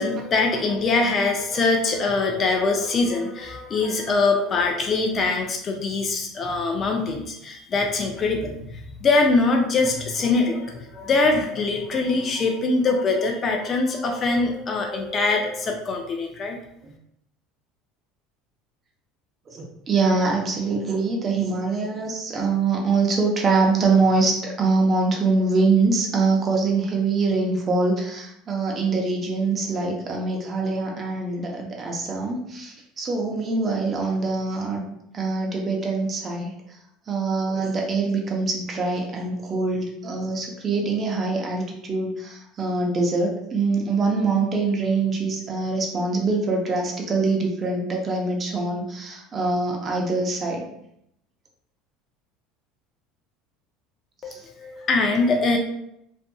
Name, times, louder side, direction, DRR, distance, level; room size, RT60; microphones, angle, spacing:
voice 1, 0.0-16.6 54.2-55.6, left 3 dB, 35° left, 2 dB, 0.4 m, -23 dB
voice 2, 19.5-34.8 35.1-36.5 37.1-50.6 54.3-54.4, right 3 dB, 35° right, 0 dB, 0.7 m, -24 dB
2.5 x 2.5 x 2.3 m, 0.76 s
supercardioid pair, 105°, 0 cm